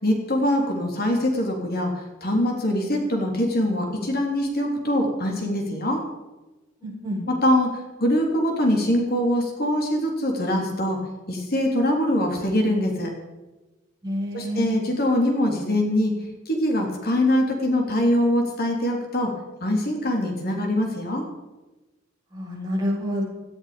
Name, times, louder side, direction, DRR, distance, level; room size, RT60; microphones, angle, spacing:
voice 1, 0.0-6.0 7.3-11.0 11.3-13.1 14.3-16.2 16.5-19.3 19.6-21.3, left 1 dB, 50° left, 2 dB, 3.6 m, -23 dB
voice 2, 6.8-7.2 14.0-14.7 22.3-23.2, equal, 20° right, -3 dB, 6.7 m, -28 dB
18.0 x 15.5 x 5.2 m, 1.1 s
head